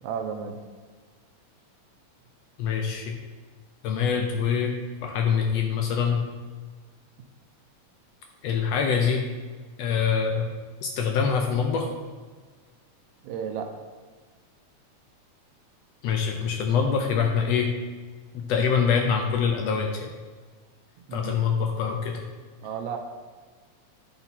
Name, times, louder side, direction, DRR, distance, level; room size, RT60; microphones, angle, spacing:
voice 1, 0.0-0.6 13.2-13.7 21.1-21.4 22.6-23.0, right 7 dB, 80° right, 4 dB, 1.8 m, -33 dB
voice 2, 2.6-3.1 3.8-4.8 5.0-6.2 8.4-9.2 9.8-10.5 10.8-11.9 16.0-17.7 18.3-20.1 21.1-22.2, left 6 dB, 75° left, 3 dB, 1.6 m, -24 dB
8.8 x 4.2 x 4.1 m, 1.5 s
omnidirectional pair, 3.4 m